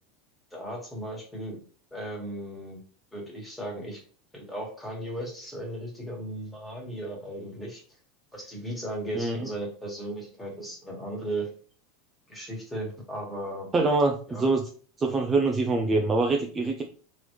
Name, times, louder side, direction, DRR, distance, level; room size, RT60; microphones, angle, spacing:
voice 1, 0.5-1.6 1.9-2.8 3.1-4.0 4.3-7.8 8.3-11.5 12.3-13.7 14.3-14.4, right 1 dB, 10° left, -1 dB, 1.8 m, -36 dB
voice 2, 13.7-14.6 15.0-16.8, right 3 dB, 20° right, 2 dB, 0.5 m, -24 dB
3.8 x 3.1 x 3.2 m, 0.41 s
supercardioid pair, 125°, 0 cm